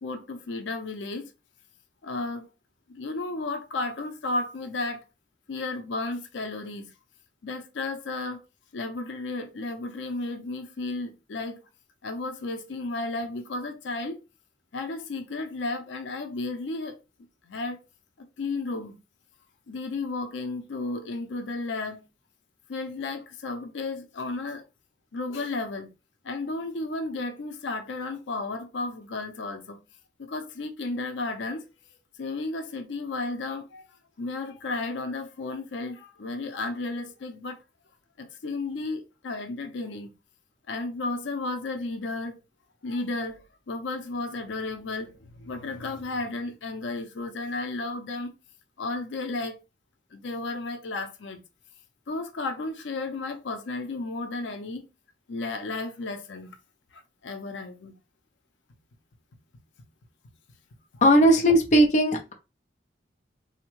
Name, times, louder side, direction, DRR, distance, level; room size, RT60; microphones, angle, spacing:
voice 1, 0.0-1.3 2.0-2.5 2.9-5.0 5.5-6.9 7.4-8.4 8.7-11.6 12.0-14.2 14.7-17.0 17.4-17.8 18.2-19.0 19.7-22.0 22.7-24.6 25.1-25.9 26.2-29.8 30.2-31.7 32.2-33.8 34.2-37.6 38.2-40.1 40.7-42.4 42.8-48.3 48.8-49.6 50.1-51.4 52.1-54.8 55.3-56.6 56.9-57.9, left 3 dB, 90° left, 0.5 m, -33 dB
voice 2, 61.0-62.3, equal, 40° left, 0.5 m, -18 dB
3.4 x 2.1 x 3.0 m
head